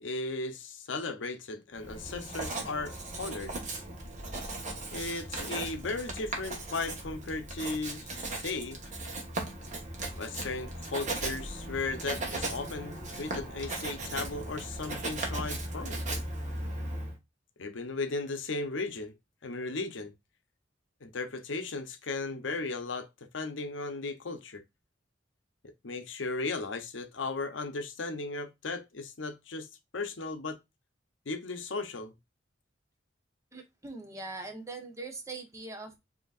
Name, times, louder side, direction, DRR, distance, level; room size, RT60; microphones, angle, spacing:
voice 1, 0.0-3.5 4.9-8.8 10.2-16.0 17.6-19.1 19.4-20.1 21.0-23.1 23.3-24.6 25.6-29.7 29.9-30.6 31.3-32.1, left 3 dB, 85° left, 0.8 m, -36 dB
Writing, 1.8-17.2, right 2 dB, 40° right, 1.3 m, -37 dB
voice 2, 33.5-36.0, right 3 dB, 15° right, 1.0 m, -41 dB
5.3 x 2.9 x 2.4 m
head